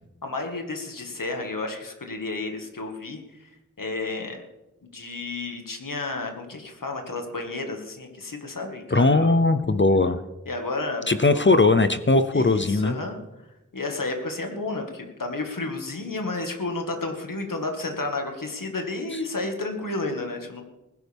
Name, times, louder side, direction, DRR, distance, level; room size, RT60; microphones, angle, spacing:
voice 1, 0.2-3.5 3.8-4.4 4.9-9.3 10.5-11.1 11.3-11.4 12.3-13.2 13.7-20.6, left 2 dB, 85° left, 3 dB, 1.9 m, -31 dB
voice 2, 8.9-10.2 11.1-13.0, left 3 dB, 35° left, 11 dB, 0.7 m, -19 dB
20.5 x 11.0 x 3.6 m, 0.98 s
wide cardioid pair, 60°, 32 cm